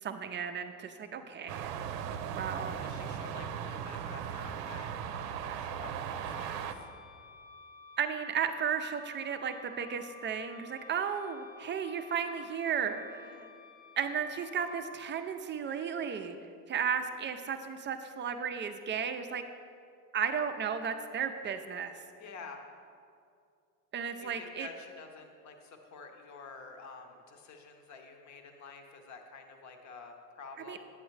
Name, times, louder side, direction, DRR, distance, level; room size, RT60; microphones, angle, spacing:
voice 1, 0.0-1.7 2.4-2.8 8.0-13.4 14.0-16.4 16.7-19.4 20.1-21.9 23.9-24.7 30.7-30.8, right 7 dB, 25° right, 7 dB, 0.4 m, -34 dB
voice 2, 1.0-1.3 2.8-6.9 13.2-13.5 22.2-22.6 24.2-30.9, left 4 dB, 35° left, 5 dB, 1.0 m, -50 dB
sound 1, 1.5-6.7, right 8 dB, 85° right, 0.6 m, -38 dB
Wind instrument woodwind instrument, 6.1-14.9, left 3 dB, 90° left, 0.8 m, -53 dB
9.5 x 7.7 x 3.2 m, 2.4 s
supercardioid pair, 95°, 47 cm